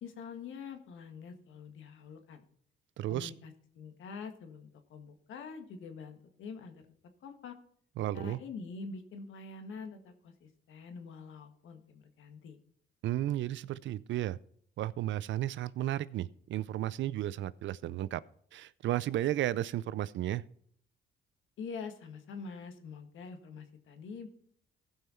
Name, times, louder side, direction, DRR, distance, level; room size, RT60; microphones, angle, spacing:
voice 1, 0.0-2.4 3.1-6.9 7.2-7.5 8.1-12.6 21.6-24.3, left 5 dB, 75° left, 6 dB, 1.7 m, -45 dB
voice 2, 3.0-3.3 8.0-8.4 13.0-14.4 14.8-18.2 18.5-20.4, right 13 dB, 70° right, 19 dB, 0.5 m, -33 dB
15.5 x 5.6 x 4.4 m, 0.63 s
cardioid pair, 90°, 20 cm